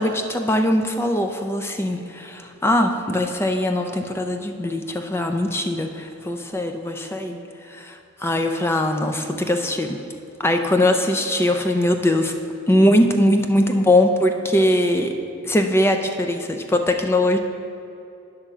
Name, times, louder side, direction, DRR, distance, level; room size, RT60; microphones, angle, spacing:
voice 1, 0.0-7.4 7.7-10.0 10.4-12.3 12.7-15.1 15.4-17.4, left 1 dB, 10° left, 5 dB, 0.4 m, -21 dB
10.0 x 3.6 x 6.6 m, 2.7 s
head